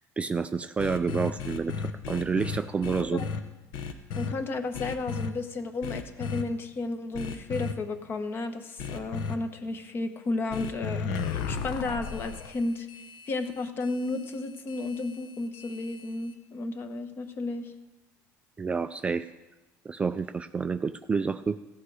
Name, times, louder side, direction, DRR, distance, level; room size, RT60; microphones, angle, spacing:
voice 1, 0.2-1.7 2.1-3.2 18.6-19.3 19.9-21.6, right 5 dB, 20° right, 10 dB, 0.3 m, -29 dB
sound 1, 0.8-3.4 3.7-4.3 4.7-5.3 5.8-6.4 7.1-7.7 8.8-9.3 10.5-16.3, left 5 dB, 70° left, 1.0 m, -35 dB
voice 2, 4.2-12.9 13.3-17.7, left 3 dB, 35° left, 8 dB, 1.1 m, -33 dB
15.5 x 8.5 x 4.9 m, 1.1 s
cardioid pair, 135°, 6 cm